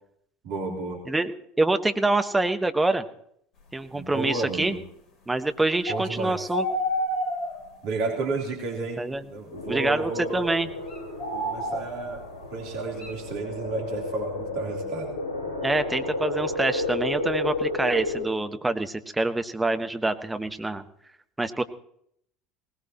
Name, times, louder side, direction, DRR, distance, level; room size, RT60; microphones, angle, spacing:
voice 1, 0.4-1.0 3.9-4.8 5.9-6.4 7.8-9.0 9.3-10.5 11.3-12.2 12.5-15.1, right 3 dB, 55° right, 0 dB, 3.4 m, -32 dB
voice 2, 1.6-3.0 3.7-4.8 5.3-6.6 9.0-9.2 9.7-10.7 15.6-20.8 21.4-21.6, right 2 dB, 10° right, 8 dB, 1.2 m, -26 dB
sound 1, 5.9-6.1 6.5-7.8 8.4-8.5 9.1-9.7 10.9-12.3 13.0-13.1, equal, 45° left, 3.1 m, -30 dB
sound 2, 9.5-18.2, left 2 dB, 75° left, 5.2 m, -32 dB
19.5 x 19.5 x 3.0 m, 0.69 s
figure-of-eight pair, 65°, 0 cm